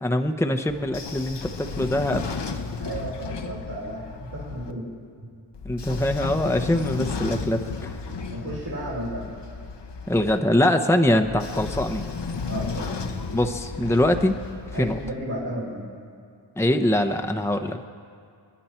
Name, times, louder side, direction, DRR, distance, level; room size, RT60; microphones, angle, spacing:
voice 1, 0.0-2.3 5.6-8.0 10.1-12.0 13.3-14.4 14.8-15.0 16.6-17.9, left 1 dB, 5° left, 5 dB, 1.0 m, -23 dB
Train / Sliding door, 0.7-4.7 5.5-10.4 11.2-15.1, left 4 dB, 65° left, 1.2 m, -33 dB
voice 2, 2.8-4.9 8.0-9.3 12.5-12.9 14.7-15.8, right 1 dB, 70° right, -8 dB, 4.7 m, -33 dB
29.0 x 10.0 x 4.5 m, 2.3 s
cardioid pair, 50°, 45 cm